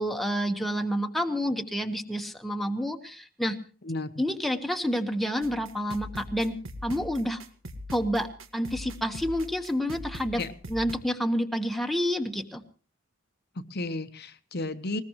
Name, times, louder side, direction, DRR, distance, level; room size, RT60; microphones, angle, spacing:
voice 1, 0.0-3.6 4.2-6.5 6.8-7.4 7.9-10.4 10.7-12.6, equal, ahead, 4 dB, 1.3 m, -29 dB
voice 2, 3.8-4.2 10.3-10.5 13.5-15.0, left 2 dB, 50° left, 8 dB, 1.1 m, -33 dB
sound 1, 5.4-11.0, left 1 dB, 65° right, 1.8 m, -41 dB
20.5 x 20.0 x 3.1 m, 0.39 s
head